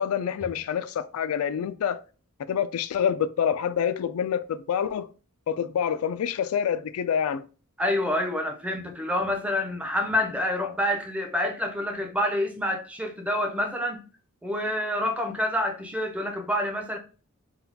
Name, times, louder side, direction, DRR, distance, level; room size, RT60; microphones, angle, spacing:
voice 1, 0.0-2.0 2.5-5.1 5.5-7.5, left 8 dB, 85° left, 0.3 m, -27 dB
voice 2, 7.8-14.0 14.4-17.0, left 1 dB, 5° right, 0.5 m, -27 dB
3.9 x 2.3 x 2.7 m
head